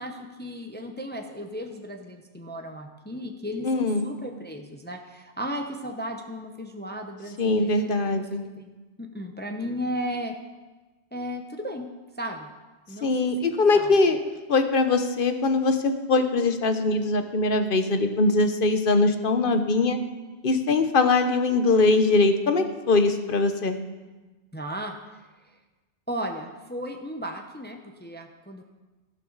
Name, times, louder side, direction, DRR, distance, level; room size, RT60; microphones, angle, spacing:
voice 1, 0.0-8.7 9.0-10.3 11.1-11.9 12.2-12.5 12.9-13.1 13.4-13.9 24.5-24.9 26.1-28.6, equal, 10° left, 4 dB, 0.8 m, -35 dB
voice 2, 3.6-4.1 7.4-8.4 13.0-14.2 14.5-20.0 20.4-23.8, left 3 dB, 50° left, 8 dB, 1.1 m, -22 dB
14.5 x 12.0 x 4.0 m, 1.2 s
omnidirectional pair, 1.2 m